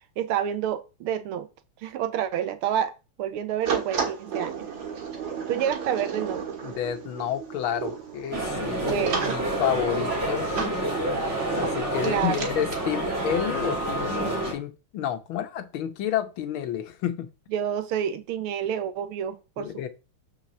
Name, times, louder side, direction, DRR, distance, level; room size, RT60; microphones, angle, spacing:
voice 1, 0.2-1.5 1.8-2.9 3.2-4.7 5.5-6.5 8.9-9.4 12.0-12.5 17.5-19.9, right 9 dB, 80° right, 1.7 m, -28 dB
sound 1, 3.6-12.8, right 6 dB, 60° right, 2.4 m, -34 dB
voice 2, 6.6-10.7 11.6-17.3 19.6-19.9, left 10 dB, 70° left, 1.7 m, -30 dB
sound 2, 8.3-14.5, right 1 dB, 30° right, 3.0 m, -28 dB
5.9 x 4.9 x 6.6 m
omnidirectional pair, 2.4 m